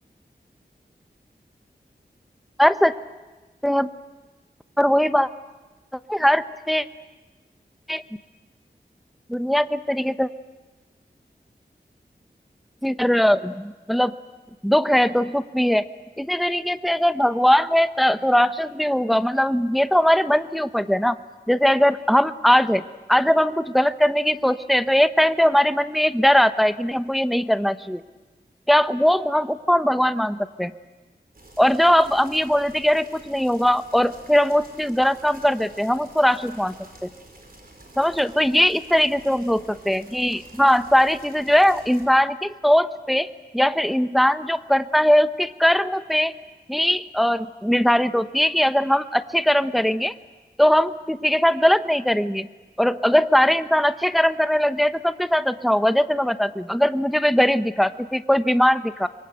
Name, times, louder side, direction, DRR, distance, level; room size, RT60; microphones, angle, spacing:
voice 1, 2.6-2.9 3.6-3.9 4.8-5.3 6.1-6.9 7.9-8.0 9.3-10.3 12.8-14.1 14.6-15.9 16.2-21.2 21.5-22.8 23.1-28.0 28.7-30.7 31.6-36.7 37.0-37.1 38.0-43.3 43.5-46.3 46.7-50.1 50.6-52.5 52.8-59.1, equal, ahead, 11 dB, 0.9 m, -20 dB
sound 1, 31.3-42.1, right 1 dB, 60° right, 5.6 m, -48 dB
26.0 x 23.0 x 7.9 m, 1.2 s
wide cardioid pair, 65°, 18 cm